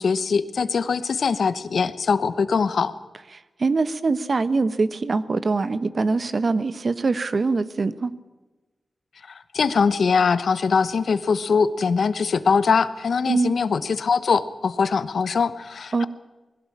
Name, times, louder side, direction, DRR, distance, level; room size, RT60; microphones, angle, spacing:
voice 1, 0.0-2.9 9.3-16.1, left 5 dB, 80° left, 14 dB, 1.1 m, -22 dB
voice 2, 3.6-8.1 13.3-13.6 15.9-16.1, right 3 dB, 50° right, 14 dB, 1.1 m, -23 dB
20.5 x 17.0 x 8.6 m, 1.2 s
wide cardioid pair, 95°, 0 cm